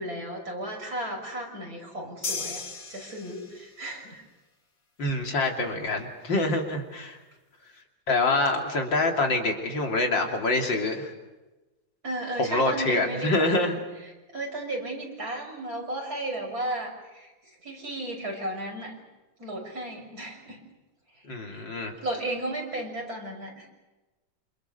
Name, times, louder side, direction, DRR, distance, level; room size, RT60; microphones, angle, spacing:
voice 1, 0.0-2.6 2.9-4.2 12.0-13.7 14.3-18.9 19.4-20.6 21.5-21.6 22.0-23.7, right 1 dB, 50° right, 1 dB, 6.8 m, -34 dB
sound 1, 2.2-3.8, left 4 dB, 35° left, 2.5 m, -35 dB
voice 2, 5.0-7.2 8.1-11.1 12.4-13.8 21.3-21.9, left 2 dB, 70° left, 2 dB, 3.6 m, -26 dB
28.0 x 27.5 x 6.9 m, 1.1 s
omnidirectional pair, 2.1 m